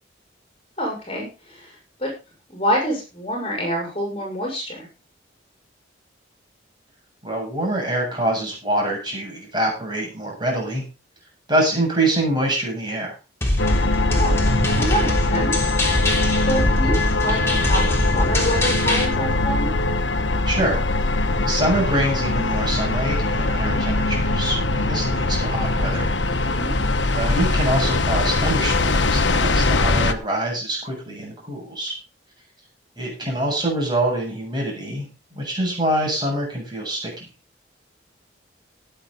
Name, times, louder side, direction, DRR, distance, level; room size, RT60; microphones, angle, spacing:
voice 1, 0.8-1.7 2.0-2.1 2.5-4.9 14.1-15.5 16.1-19.7 26.5-26.7, equal, 30° left, 0 dB, 6.4 m, -27 dB
voice 2, 7.2-10.8 11.5-13.1 20.5-20.8 21.4-26.1 27.1-32.0 33.0-35.1 35.3-37.1, right 1 dB, 25° right, -1 dB, 7.9 m, -25 dB
sound 1, 13.4-19.0, left 1 dB, 15° left, 3.4 m, -23 dB
sound 2, 13.6-30.1, left 2 dB, 75° left, 1.2 m, -22 dB
18.0 x 9.1 x 4.0 m, 0.30 s
head